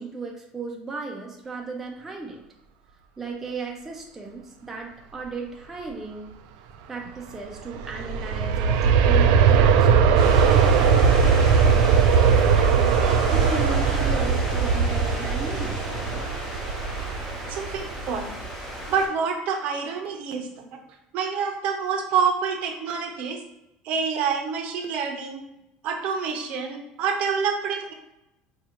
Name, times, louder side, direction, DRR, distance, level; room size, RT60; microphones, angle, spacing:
voice 1, 0.0-2.4 3.2-6.3 6.9-11.1 12.1-15.7, right 3 dB, 10° right, -1 dB, 0.5 m, -35 dB
Aircraft, 7.6-18.4 18.8-18.9, right 6 dB, 85° right, 0.3 m, -20 dB
sound 1, 10.1-19.1, equal, 10° left, 0.9 m, -34 dB
voice 2, 17.5-18.3 18.9-20.7 21.1-23.4 23.8-25.4 25.8-27.9, right 6 dB, 50° right, 3 dB, 0.6 m, -27 dB
4.7 x 2.3 x 2.9 m, 0.87 s
cardioid pair, 160°, 3 cm